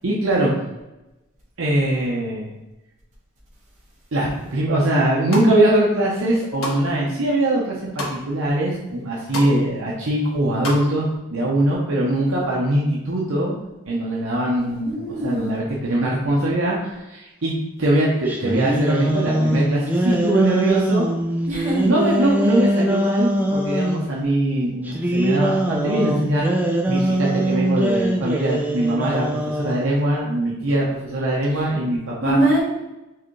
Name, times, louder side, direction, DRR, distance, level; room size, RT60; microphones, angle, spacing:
voice 1, 0.0-0.6 1.6-2.5 4.1-13.5 13.9-17.5 17.8-21.1 21.8-32.4, right 1 dB, 65° right, -4 dB, 0.7 m, -22 dB
sound 1, 5.0-5.5 6.0-6.8 7.2-8.2 8.7-8.8 9.0-9.6 9.8-10.8 11.1-11.2, left 2 dB, 80° left, 1.1 m, -30 dB
voice 2, 14.6-15.5 21.5-21.9 32.2-32.6, right 1 dB, 35° right, -6 dB, 1.5 m, -22 dB
sound 2, 18.3-24.1 24.9-29.9, right 1 dB, 10° right, 0.4 m, -22 dB
4.6 x 3.5 x 3.2 m, 1.0 s
head